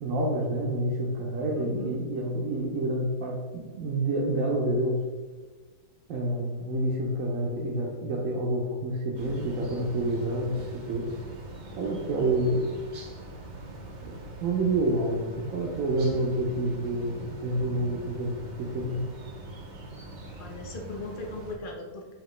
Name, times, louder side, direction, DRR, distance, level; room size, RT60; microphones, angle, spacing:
voice 1, 0.0-5.0 6.1-11.1 11.7-12.6 14.0-19.0, right 1 dB, 75° right, -3 dB, 1.0 m, -28 dB
voice 2, 1.6-1.9 20.4-22.1, left 2 dB, 55° left, 1 dB, 0.6 m, -38 dB
sound 1, 9.1-21.5, right 2 dB, 55° right, 0.5 m, -42 dB
5.0 x 2.9 x 3.0 m, 1.3 s
omnidirectional pair, 1.5 m